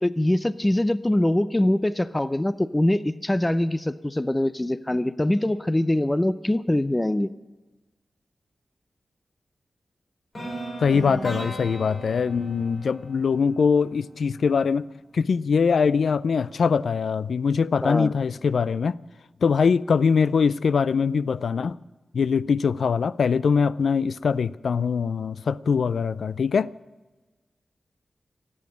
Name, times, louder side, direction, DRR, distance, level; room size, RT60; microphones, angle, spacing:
voice 1, 0.0-7.3 17.8-18.1, left 1 dB, 15° left, 0.5 m, -23 dB
sound 1, 10.3-14.3, right 1 dB, 35° left, 6.0 m, -36 dB
voice 2, 10.8-14.9 15.1-18.9 19.4-21.7 22.1-26.7, left 5 dB, 80° left, 0.4 m, -22 dB
14.0 x 8.7 x 9.9 m
wide cardioid pair, 75°, 0 cm